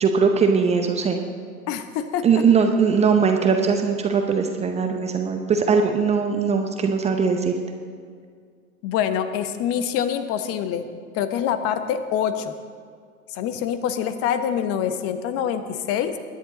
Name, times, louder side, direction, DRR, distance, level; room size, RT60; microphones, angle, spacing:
voice 1, 0.0-1.2 2.2-7.5, right 5 dB, 15° right, 5 dB, 0.7 m, -20 dB
voice 2, 1.7-2.4 8.8-10.9 11.1-12.5 13.3-16.2, left 9 dB, 35° left, 10 dB, 1.0 m, -25 dB
21.5 x 10.0 x 4.0 m, 2.1 s
figure-of-eight pair, 100°, 43 cm